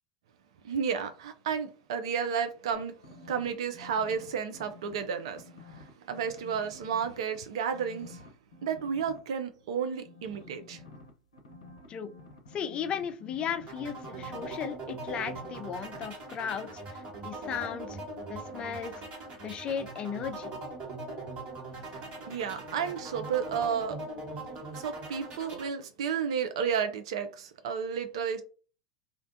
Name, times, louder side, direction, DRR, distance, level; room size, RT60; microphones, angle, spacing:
voice 1, 0.6-3.0 3.3-8.2 8.6-10.8 21.8-24.0 24.7-28.4, right 7 dB, 65° right, 0.4 m, -32 dB
sound 1, 2.7-5.0 5.3-7.4 7.7-9.2 10.0-15.7 15.9-16.1, left 2 dB, 80° left, 0.6 m, -50 dB
voice 2, 12.5-18.0 18.3-18.9 19.4-20.5, left 7 dB, 35° left, 0.4 m, -36 dB
sound 2, 13.7-25.7, right 2 dB, 45° right, 1.3 m, -41 dB
sound 3, 21.6-27.1, left 1 dB, 15° left, 1.0 m, -56 dB
2.4 x 2.1 x 2.6 m
hypercardioid pair, 85°, 3 cm